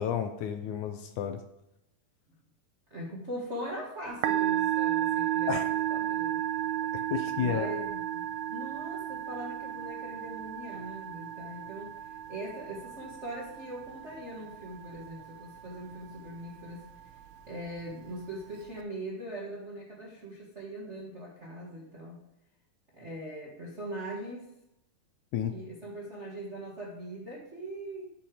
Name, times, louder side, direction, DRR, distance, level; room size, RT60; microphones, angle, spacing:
voice 1, 0.0-1.4 5.5-5.7 6.9-7.7 25.3-25.5, left 8 dB, 75° left, 7 dB, 1.9 m, -31 dB
voice 2, 2.9-5.6 5.9-6.4 7.4-16.9 17.5-22.2 22.9-24.5 25.5-28.1, right 1 dB, 50° right, -3 dB, 0.8 m, -41 dB
Musical instrument, 4.1-18.8, right 12 dB, 85° right, 2.2 m, -34 dB
10.5 x 7.2 x 4.8 m, 0.85 s
omnidirectional pair, 4.0 m